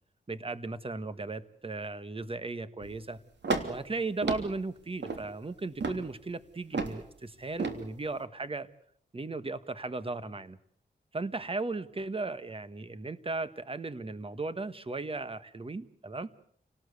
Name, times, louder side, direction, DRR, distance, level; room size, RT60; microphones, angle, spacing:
voice 1, 0.3-3.2 3.7-8.7 9.1-10.6 11.1-16.3, right 3 dB, 30° right, 13 dB, 1.4 m, -36 dB
sound 1, 2.8-3.0 3.4-3.8 4.2-4.5 5.0-5.2 5.8-6.0 6.7-7.0 7.6-7.8, right 3 dB, 75° right, 3.1 m, -32 dB
29.0 x 18.5 x 8.2 m, 0.64 s
wide cardioid pair, 100°, 18 cm